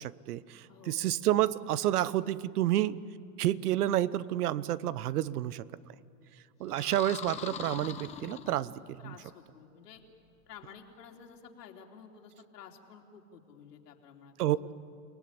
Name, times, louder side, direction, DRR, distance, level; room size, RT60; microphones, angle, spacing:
voice 1, 0.0-3.0 3.4-5.6 6.6-9.0 14.4-14.6, right 13 dB, 70° right, 18 dB, 1.0 m, -29 dB
voice 2, 0.7-1.0 6.7-6.9 9.0-10.0 10.5-14.3, left 7 dB, 80° left, 2 dB, 3.6 m, -52 dB
sound 1, 6.7-9.0, left 8 dB, 15° left, 0.8 m, -42 dB
29.5 x 19.5 x 10.0 m, 2.5 s
supercardioid pair, 155°, 48 cm